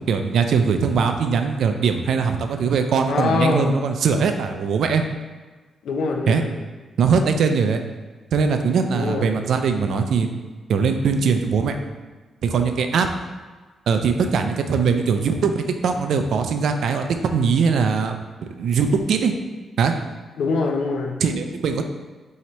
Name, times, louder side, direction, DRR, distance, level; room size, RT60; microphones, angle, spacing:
voice 1, 0.0-5.0 6.3-6.4 7.0-7.8 8.3-10.3 10.7-11.8 12.4-13.1 13.9-18.2 18.6-19.3 19.8-19.9 21.2-21.8, right 5 dB, 70° right, 6 dB, 0.3 m, -21 dB
voice 2, 3.1-3.7 5.8-6.5 8.9-9.3 20.4-21.2, left 4 dB, 75° left, 2 dB, 0.5 m, -23 dB
4.3 x 2.8 x 3.0 m, 1.3 s
cardioid pair, 120°, 0 cm